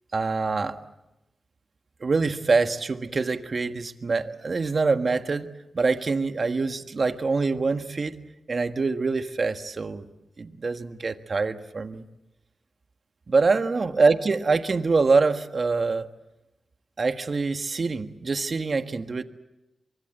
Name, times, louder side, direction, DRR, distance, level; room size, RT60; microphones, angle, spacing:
voice 1, 0.1-0.8 2.0-5.5 5.7-8.2 8.5-10.1 10.4-12.0 13.3-16.1 17.0-19.2, right 4 dB, 50° right, 9 dB, 1.6 m, -25 dB
24.5 x 23.0 x 8.0 m, 0.98 s
cardioid pair, 50°, 0 cm